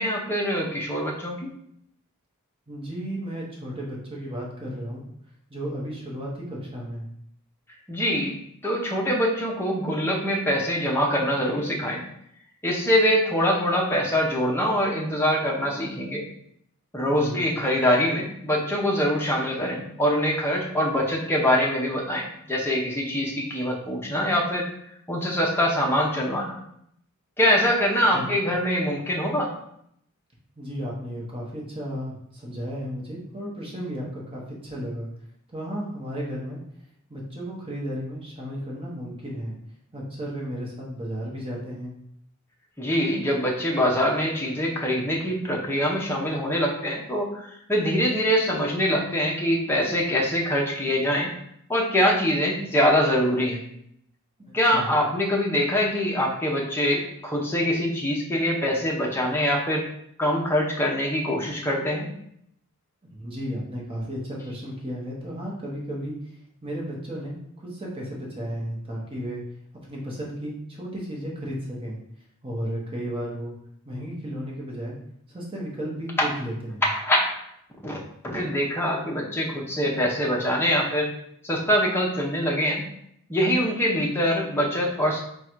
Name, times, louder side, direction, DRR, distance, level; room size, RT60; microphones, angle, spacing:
voice 1, 0.0-1.5 7.9-8.3 8.6-12.0 12.6-16.2 16.9-24.7 25.1-26.6 27.4-29.5 42.8-51.3 51.7-53.6 54.5-59.9 60.2-62.1 76.2-76.3 76.9-77.4 77.8-78.0 78.2-81.1 81.4-82.8 83.3-85.2, equal, 10° left, -2 dB, 0.7 m, -24 dB
voice 2, 2.7-5.0 5.5-7.1 17.0-17.5 28.1-28.4 30.6-35.1 35.5-36.6 37.1-39.5 39.9-41.9 54.5-54.9 63.1-66.1 66.6-69.4 69.8-72.0 72.4-73.5 73.8-75.0 75.3-76.8, equal, 25° right, -3 dB, 1.1 m, -34 dB
3.8 x 2.4 x 4.5 m, 0.72 s
head